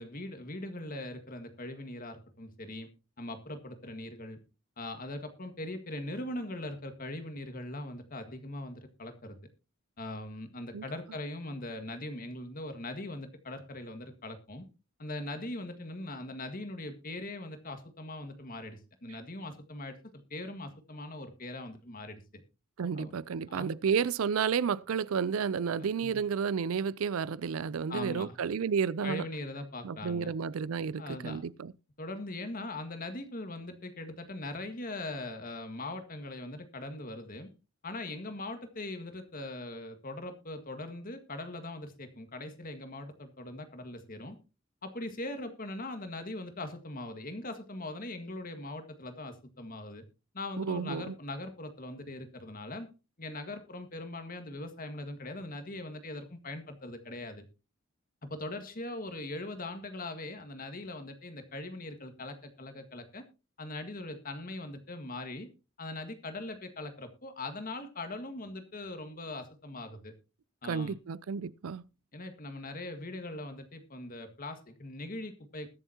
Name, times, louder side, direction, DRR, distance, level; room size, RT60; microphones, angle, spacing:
voice 1, 0.0-2.9 3.2-4.4 4.8-9.4 10.0-14.7 15.0-22.4 22.9-23.1 23.5-23.7 25.8-26.2 27.9-28.4 29.0-30.3 31.0-31.4 32.0-37.5 37.8-44.4 44.8-50.0 50.3-52.9 53.2-57.4 58.2-63.2 63.6-65.5 65.8-70.1 70.6-70.9 72.1-75.7, left 2 dB, 45° left, 1.7 m, -41 dB
voice 2, 22.8-29.3 29.8-31.7 50.6-51.1 70.6-71.8, right 6 dB, 85° right, 0.4 m, -31 dB
21.0 x 7.2 x 2.8 m
head